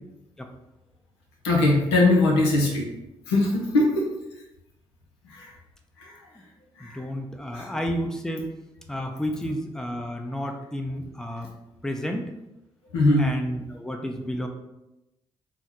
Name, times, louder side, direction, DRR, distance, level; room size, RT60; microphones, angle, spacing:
voice 1, 1.4-2.9 3.3-4.1 5.3-5.5 6.0-6.2 6.8-7.0 7.5-7.7 9.5-9.6 12.9-13.3, left 2 dB, 85° left, -2 dB, 0.6 m, -21 dB
voice 2, 6.8-8.5 8.9-11.5 11.8-12.2 13.2-14.5, equal, 5° left, 3 dB, 0.5 m, -31 dB
3.5 x 2.1 x 3.0 m, 0.92 s
hypercardioid pair, 40°, 13 cm